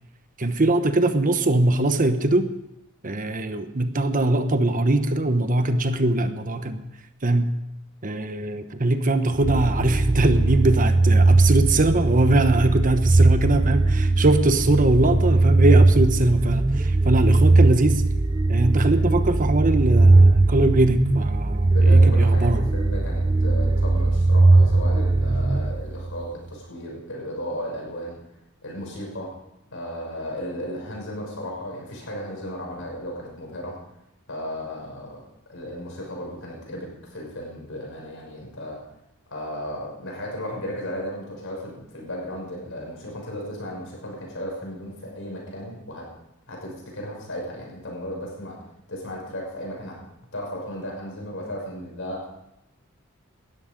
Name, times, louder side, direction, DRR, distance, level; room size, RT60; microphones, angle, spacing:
voice 1, 0.4-2.5 3.0-6.8 7.2-7.5 8.0-18.0 18.5-22.6, right 2 dB, 40° right, 9 dB, 1.0 m, -21 dB
sound 1, 9.4-26.2, right 2 dB, 20° right, 0.4 m, -19 dB
voice 2, 21.7-28.2 28.6-29.3 29.7-33.8 34.3-35.2 35.5-38.8 39.3-46.1 46.5-48.6 48.9-50.0 50.3-52.2, equal, 60° left, -1 dB, 6.3 m, -35 dB
19.0 x 13.0 x 5.3 m, 0.87 s
head